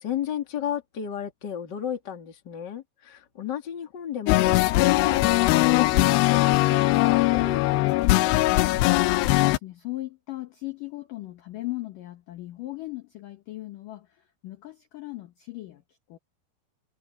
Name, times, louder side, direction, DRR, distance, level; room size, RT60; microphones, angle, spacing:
voice 1, 0.0-8.7, left 9 dB, 35° left, 2.0 m, -33 dB
sound 1, 4.3-9.6, left 20 dB, 90° left, 2.4 m, -20 dB
voice 2, 9.2-16.2, left 18 dB, 70° left, 2.1 m, -38 dB
omnidirectional pair, 5.5 m